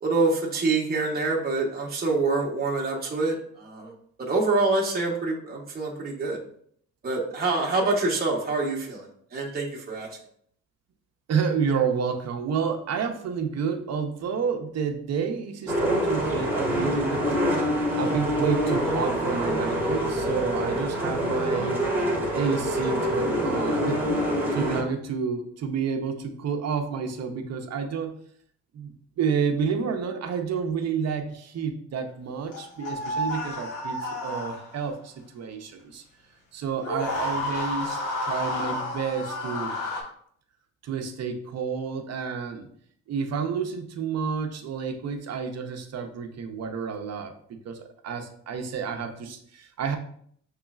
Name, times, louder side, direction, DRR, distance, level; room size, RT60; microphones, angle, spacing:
voice 1, 0.0-3.9 4.2-6.4 7.0-10.1, right 3 dB, 30° right, -2 dB, 1.1 m, -26 dB
voice 2, 11.3-17.2 18.0-21.9 22.3-24.0 24.5-28.1 28.7-36.0 36.5-39.8 40.8-42.7 43.1-50.0, right 6 dB, 60° right, 5 dB, 0.8 m, -30 dB
sound 1, 15.7-24.8, equal, 5° right, 1.4 m, -25 dB
sound 2, 32.5-34.9 36.8-40.0, left 1 dB, 80° left, 1.4 m, -31 dB
5.9 x 3.1 x 2.4 m, 0.63 s
cardioid pair, 90°, 30 cm